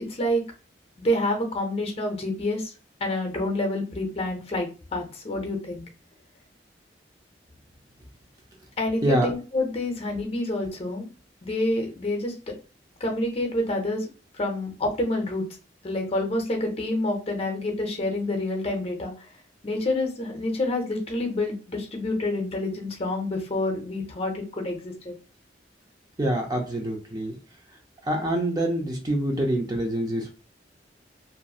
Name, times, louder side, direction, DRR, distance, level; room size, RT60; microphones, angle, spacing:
voice 1, 0.1-0.4 1.0-2.7 3.0-5.8 8.8-11.1 11.4-12.5 13.0-14.1 14.4-15.5 15.8-19.1 19.6-25.1, left 1 dB, 35° left, 3 dB, 0.7 m, -28 dB
voice 2, 26.2-27.4 28.0-30.3, right 1 dB, 20° right, 1 dB, 0.5 m, -25 dB
3.0 x 2.5 x 2.3 m, 0.33 s
head